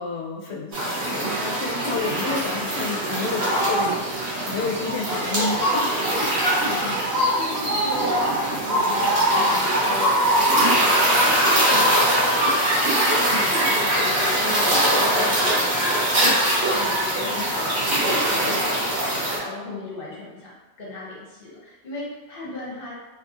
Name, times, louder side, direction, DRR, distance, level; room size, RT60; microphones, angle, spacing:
voice 1, 0.0-3.9 4.5-6.3, left 4 dB, 85° left, -2 dB, 0.9 m, -30 dB
sound 1, 0.7-19.4, right 1 dB, 80° right, 1.2 m, -21 dB
voice 2, 6.5-16.3 16.7-20.5 20.8-22.9, left 2 dB, 60° left, -5 dB, 1.0 m, -37 dB
2.8 x 2.6 x 2.4 m, 1.1 s
omnidirectional pair, 1.1 m